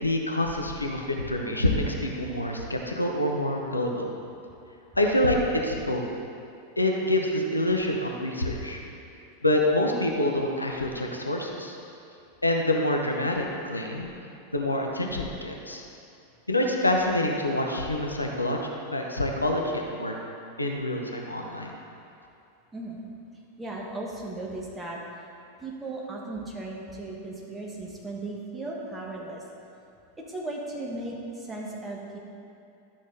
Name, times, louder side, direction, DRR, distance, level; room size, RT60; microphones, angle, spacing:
voice 1, 0.0-4.1 5.0-6.1 6.8-8.8 9.4-11.8 12.4-14.1 14.5-15.8 16.5-20.1 20.6-21.7, left 1 dB, 85° left, 1 dB, 0.8 m, -26 dB
voice 2, 22.7-23.0 23.6-25.0 25.6-29.4 30.3-32.2, right 2 dB, 15° right, -2 dB, 1.6 m, -36 dB
12.0 x 6.3 x 3.9 m, 2.7 s
figure-of-eight pair, 90°, 0 cm